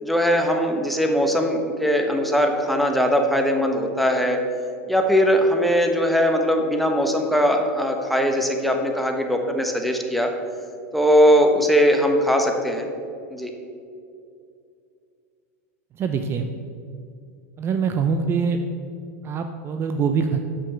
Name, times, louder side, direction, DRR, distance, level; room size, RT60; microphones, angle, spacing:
voice 1, 0.0-4.4 4.9-10.3 10.9-12.9 13.3-13.5, equal, ahead, 3 dB, 1.0 m, -20 dB
voice 2, 16.0-16.5 17.6-18.6 19.2-20.4, right 6 dB, 30° right, 7 dB, 0.5 m, -23 dB
7.1 x 6.1 x 6.6 m, 2.4 s
supercardioid pair, 125°, 8 cm